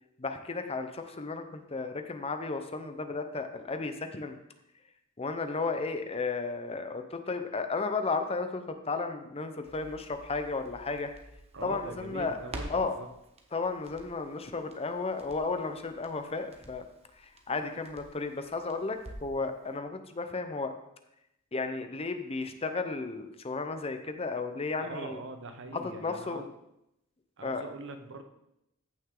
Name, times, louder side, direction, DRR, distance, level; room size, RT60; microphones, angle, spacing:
voice 1, 0.2-4.4 5.2-11.1 11.6-12.4 12.7-13.0 13.5-16.8 17.2-20.7 21.5-25.2 25.7-26.4 27.4-27.6, left 4 dB, 30° left, 7 dB, 0.7 m, -34 dB
Crackle, 9.6-19.4 19.7-19.8, right 1 dB, 30° right, 1.1 m, -49 dB
voice 2, 11.5-13.1 24.8-26.5 27.4-28.2, right 2 dB, 60° right, 7 dB, 0.9 m, -42 dB
14.5 x 6.2 x 3.8 m, 0.83 s
head